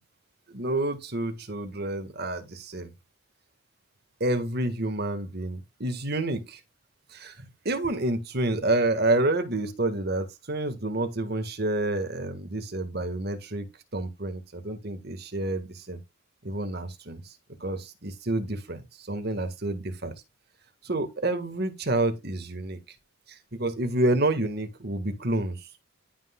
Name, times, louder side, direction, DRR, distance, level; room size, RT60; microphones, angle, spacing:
voice 1, 0.5-2.9 4.2-6.6 7.1-13.7 13.9-16.0 16.4-17.3 17.6-20.1 20.8-22.8 23.3-25.7, right 2 dB, 55° right, 1.8 m, -29 dB
12.0 x 5.9 x 2.4 m
head